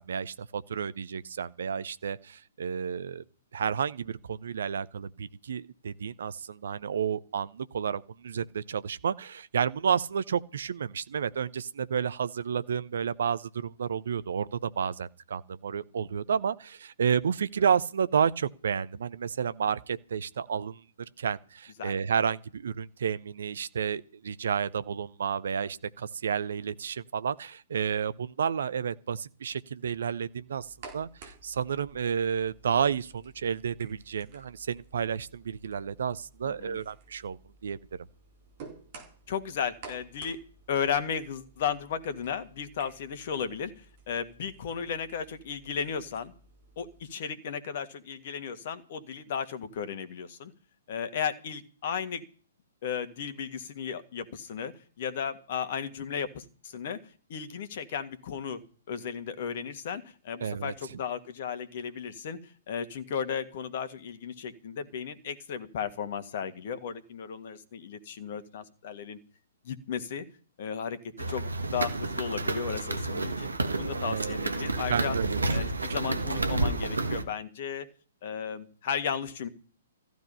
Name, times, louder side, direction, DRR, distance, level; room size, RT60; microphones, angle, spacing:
voice 1, 0.0-3.2 3.5-20.8 21.2-30.7 30.9-37.8 60.4-60.7 74.0-74.4 74.9-75.8, right 7 dB, 60° right, 0.8 m, -31 dB
sound 1, 30.5-47.0, right 4 dB, 40° right, 4.2 m, -53 dB
voice 2, 36.4-36.8 39.3-40.4 40.7-46.3 46.8-50.5 50.9-52.2 52.8-57.0 57.3-58.6 58.9-69.2 69.6-70.2 70.6-71.0 71.3-73.5 73.8-75.2 75.5-77.9 78.2-79.5, left 7 dB, 50° left, 1.8 m, -35 dB
sound 2, 71.2-77.2, right 2 dB, 75° right, 1.7 m, -30 dB
15.0 x 12.5 x 5.5 m
figure-of-eight pair, 120°, 0 cm